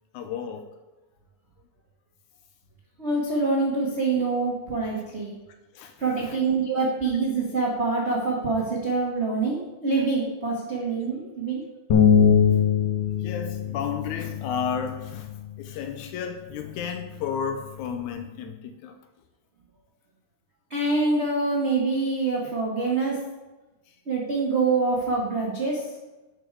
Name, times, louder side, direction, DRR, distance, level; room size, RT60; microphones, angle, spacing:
voice 1, 0.1-0.7 5.7-6.4 13.2-19.0 23.9-24.0, left 7 dB, 80° left, 6 dB, 2.0 m, -33 dB
voice 2, 3.0-5.3 6.0-11.6 20.7-23.2 24.1-25.8, right 3 dB, 60° right, -3 dB, 0.6 m, -25 dB
sound 1, 11.9-18.1, left 7 dB, 65° left, 1.2 m, -24 dB
11.0 x 5.4 x 4.6 m, 1.1 s
omnidirectional pair, 3.5 m